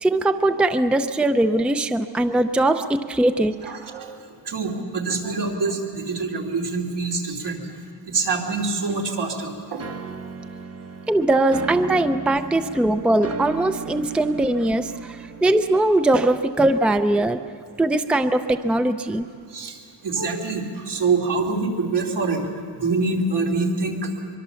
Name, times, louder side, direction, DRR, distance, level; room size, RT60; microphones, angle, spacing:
voice 1, 0.0-3.7 11.1-17.4 17.8-19.3, right 1 dB, 5° right, 9 dB, 0.5 m, -21 dB
voice 2, 3.6-4.1 4.4-7.6 8.1-9.8 14.1-14.2 15.3-15.4 19.5-22.4 22.8-24.1, right 4 dB, 80° right, 0 dB, 3.1 m, -25 dB
sound 1, 9.8-16.6, right 5 dB, 35° right, 1.0 m, -36 dB
24.0 x 23.0 x 7.0 m, 2.4 s
wide cardioid pair, 175°, 41 cm